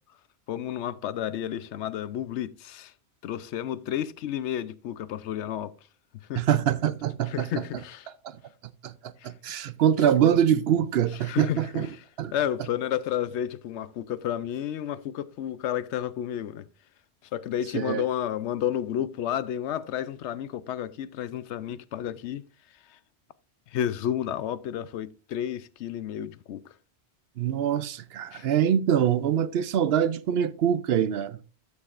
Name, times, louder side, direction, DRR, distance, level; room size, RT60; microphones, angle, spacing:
voice 1, 0.5-2.9 3.2-5.7 6.3-6.4 7.3-8.1 9.2-9.3 11.2-12.0 12.3-16.6 17.3-22.4 22.9-23.0 23.7-26.7 28.3-28.5, left 10 dB, 80° left, 0.9 m, -31 dB
voice 2, 6.4-7.5 8.2-8.4 8.8-8.9 9.2-11.9 12.2-12.3 17.7-18.0 27.4-31.4, right 9 dB, 65° right, 0.8 m, -24 dB
12.5 x 8.3 x 2.4 m
omnidirectional pair, 1.2 m